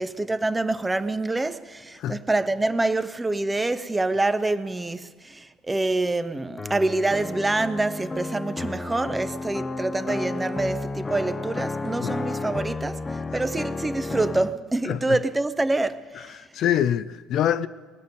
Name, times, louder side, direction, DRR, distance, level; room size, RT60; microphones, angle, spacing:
voice 1, 0.0-13.0 13.3-16.4, right 2 dB, 15° right, 0.7 m, -26 dB
sound 1, 6.6-14.5, left 3 dB, 20° left, 0.7 m, -32 dB
voice 2, 16.3-17.7, left 10 dB, 55° left, 0.4 m, -25 dB
19.0 x 6.7 x 9.2 m
hypercardioid pair, 65°, 0 cm